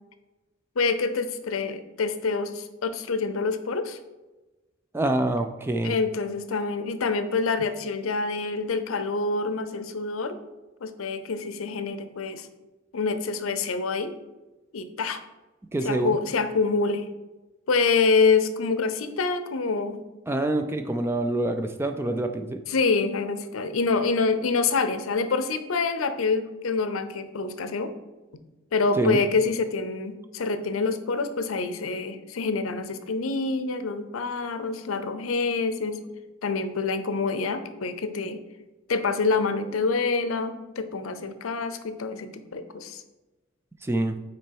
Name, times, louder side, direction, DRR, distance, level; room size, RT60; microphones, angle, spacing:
voice 1, 0.8-4.0 5.8-10.4 10.8-12.5 12.9-14.1 14.7-15.2 15.8-17.1 17.7-20.0 22.7-27.9 28.7-36.1 36.4-38.4 38.9-43.0, left 4 dB, 85° left, 11 dB, 0.6 m, -26 dB
voice 2, 4.9-6.0 15.7-16.2 20.3-22.6 29.0-29.2 43.8-44.2, right 2 dB, 10° right, 6 dB, 0.3 m, -26 dB
6.1 x 4.3 x 4.5 m, 1.1 s
head